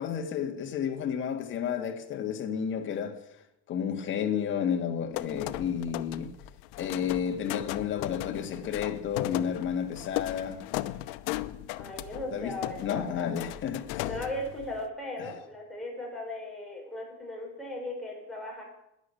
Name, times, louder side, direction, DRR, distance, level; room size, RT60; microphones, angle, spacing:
voice 1, 0.0-3.2 3.7-6.3 6.8-10.6 12.3-12.5 12.8-14.1, left 8 dB, 40° left, 1.9 m, -31 dB
sound 1, 5.1-14.9, left 16 dB, 85° left, 0.8 m, -37 dB
voice 2, 11.8-13.3 14.0-18.6, left 1 dB, ahead, 5.1 m, -37 dB
11.5 x 10.0 x 8.4 m
cardioid pair, 150°, 31 cm